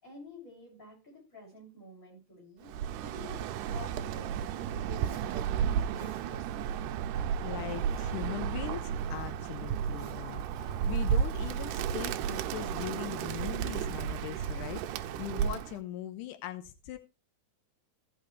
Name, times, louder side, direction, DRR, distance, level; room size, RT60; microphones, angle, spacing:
voice 1, 0.0-6.7, left 2 dB, 25° left, -5 dB, 6.7 m, -50 dB
Bird, 2.7-15.8, right 8 dB, 85° right, 2.2 m, -33 dB
Zipper (clothing), 4.8-5.3 5.7-6.3 7.1-8.3 8.6-10.3, right 2 dB, 20° right, 1.2 m, -55 dB
voice 2, 7.4-17.0, left 12 dB, 85° left, 8 dB, 2.3 m, -40 dB
16.0 x 5.8 x 3.2 m, 0.29 s
omnidirectional pair, 3.7 m